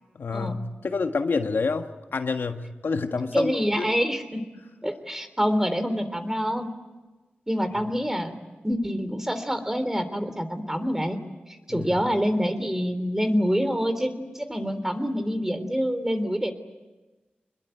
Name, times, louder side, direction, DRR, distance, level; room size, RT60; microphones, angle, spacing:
voice 1, 0.2-3.9 11.7-11.9, left 4 dB, 80° left, 6 dB, 1.6 m, -28 dB
voice 2, 3.3-4.4 4.8-6.7 7.5-8.4 8.6-11.2 11.7-16.5, equal, 10° right, 9 dB, 3.6 m, -26 dB
26.5 x 21.5 x 9.4 m, 1.2 s
wide cardioid pair, 65°, 4 cm